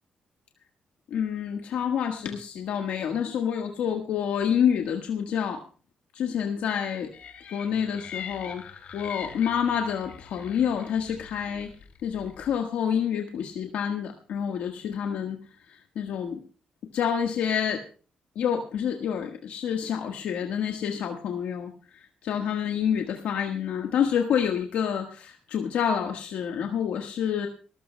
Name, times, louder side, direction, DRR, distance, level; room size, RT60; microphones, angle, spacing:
voice 1, 1.1-5.6 6.1-7.1 7.5-8.6 8.9-11.7 12.0-15.4 15.9-16.4 16.9-17.8 18.3-21.7 22.2-27.5, left 8 dB, 90° left, 3 dB, 1.4 m, -28 dB
sound 1, 7.1-12.6, left 7 dB, 70° left, 2.7 m, -43 dB
26.0 x 14.0 x 2.2 m, 0.38 s
cardioid pair, 115°, 2 cm